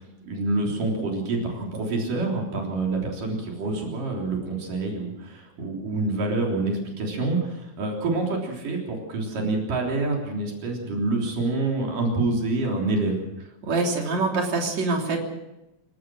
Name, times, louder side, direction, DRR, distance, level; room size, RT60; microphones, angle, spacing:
voice 1, 0.2-13.2, right 2 dB, 85° right, 0 dB, 5.2 m, -27 dB
voice 2, 13.6-15.2, right 3 dB, 60° right, 1 dB, 4.6 m, -24 dB
27.5 x 16.5 x 6.3 m, 0.95 s
omnidirectional pair, 3.7 m